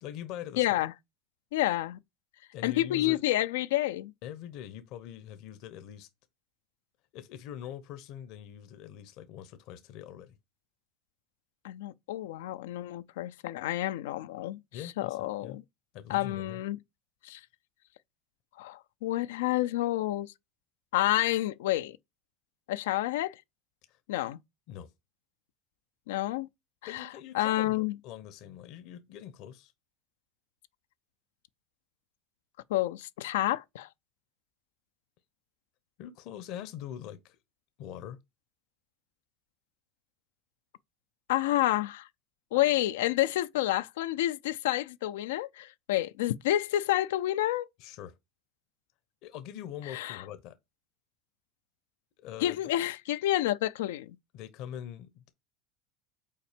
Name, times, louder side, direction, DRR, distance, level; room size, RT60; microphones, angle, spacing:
voice 1, 0.0-0.7 2.5-3.2 4.2-6.1 7.1-10.4 14.7-15.6 15.9-16.6 23.9-24.0 24.7-24.9 26.9-27.8 28.0-29.7 36.0-37.4 37.8-38.2 47.8-48.1 49.2-50.6 52.2-52.7 54.3-55.3, left 10 dB, 60° left, 0.8 m, -43 dB
voice 2, 0.6-0.9 1.5-2.0 2.6-4.1 11.6-14.6 15.0-15.6 16.1-16.8 17.2-17.4 18.6-20.3 20.9-22.0 22.7-23.4 24.1-24.4 26.1-26.5 26.9-27.1 27.3-28.0 32.7-33.9 41.3-42.1 42.5-47.7 49.9-50.2 52.4-54.1, left 15 dB, 85° left, 0.4 m, -29 dB
5.6 x 4.2 x 5.1 m
supercardioid pair, 115°, 0 cm